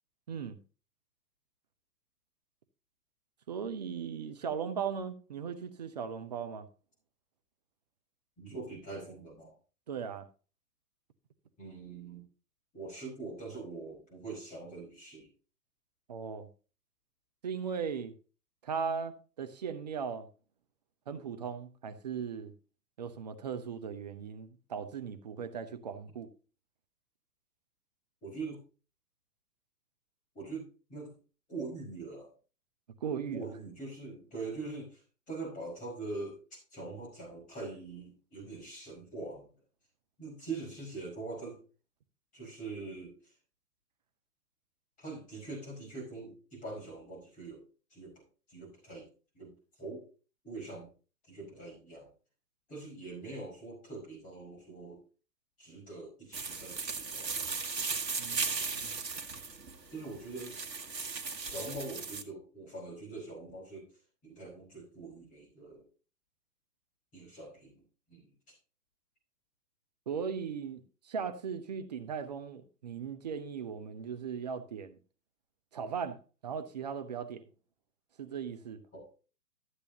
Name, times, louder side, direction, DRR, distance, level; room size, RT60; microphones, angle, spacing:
voice 1, 0.3-0.6 3.5-6.7 9.9-10.3 16.1-16.5 17.4-18.1 18.6-20.3 21.1-22.5 23.0-26.3 33.0-33.5 58.2-59.0 70.1-75.0 75.7-77.4 78.2-78.8, right 6 dB, 25° right, 0.6 m, -38 dB
voice 2, 8.4-9.5 11.6-12.2 12.7-15.3 28.2-28.6 30.4-31.1 31.5-32.3 33.3-35.0 35.3-39.5 40.2-41.6 42.3-43.1 45.0-47.6 47.9-48.1 48.5-49.1 49.4-49.5 49.8-50.0 50.4-50.9 51.3-52.1 52.7-55.0 55.6-57.5 59.9-60.6 61.5-63.9 64.2-65.9 67.1-67.7 68.1-68.2 78.9-79.1, right 3 dB, 15° left, 5.1 m, -43 dB
sound 1, 56.3-62.2, right 4 dB, 80° right, 1.3 m, -37 dB
12.5 x 8.1 x 2.8 m
figure-of-eight pair, 130°, 49 cm